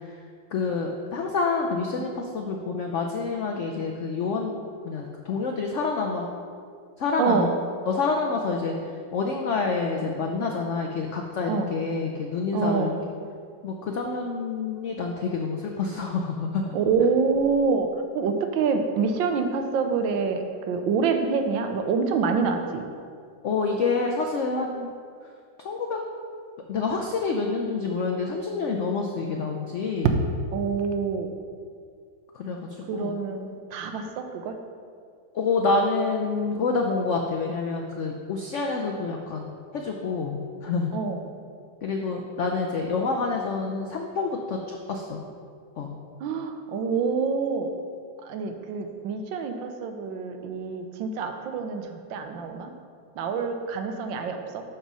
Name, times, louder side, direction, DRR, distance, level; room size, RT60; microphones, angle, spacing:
voice 1, 0.5-4.5 4.8-6.3 7.0-7.5 7.9-8.7 9.1-12.9 13.6-16.6 23.4-24.9 25.6-26.0 26.7-30.1 32.3-32.6 32.9-33.1 35.3-39.5 39.7-40.9 41.8-45.2 45.8-45.9, left 4 dB, 85° left, 1 dB, 0.6 m, -27 dB
voice 2, 7.2-7.5 11.5-11.7 12.5-12.9 16.7-17.9 18.1-22.8 30.5-31.3 32.8-34.6 40.9-41.2 46.2-47.7 48.2-52.7 53.2-54.6, right 5 dB, 85° right, 6 dB, 1.4 m, -26 dB
6.1 x 5.5 x 6.1 m, 2.2 s
omnidirectional pair, 2.0 m